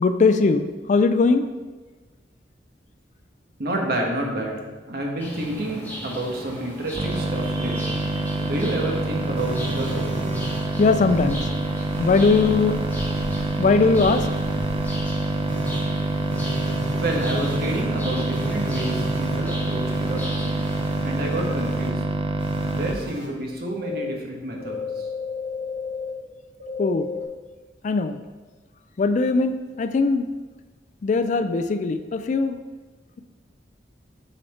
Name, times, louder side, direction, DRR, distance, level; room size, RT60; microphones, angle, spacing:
voice 1, 0.0-1.4 8.4-8.5 10.8-11.5 12.0-12.8 13.6-14.3 26.8-27.1 27.8-28.2 29.0-30.3 31.0-32.6, left 4 dB, 45° left, 10 dB, 0.3 m, -20 dB
voice 2, 3.6-8.0 8.4-10.3 17.0-20.6 21.0-22.0 22.7-25.1, right 1 dB, 55° right, 0 dB, 1.3 m, -29 dB
sound 1, 5.2-21.0, equal, 10° left, 1.3 m, -37 dB
sound 2, 7.0-22.9, right 2 dB, 30° right, 0.5 m, -26 dB
sound 3, 9.4-10.6 11.1-11.4 11.9-13.4 13.9-15.0 15.5-15.8 16.3-17.8 18.3-19.4 19.9-20.1 20.6-21.9 22.4-23.3 23.8-24.1 24.6-26.1 26.6-27.2, left 1 dB, 85° right, 2.0 m, -34 dB
8.0 x 4.3 x 4.2 m, 1.3 s
head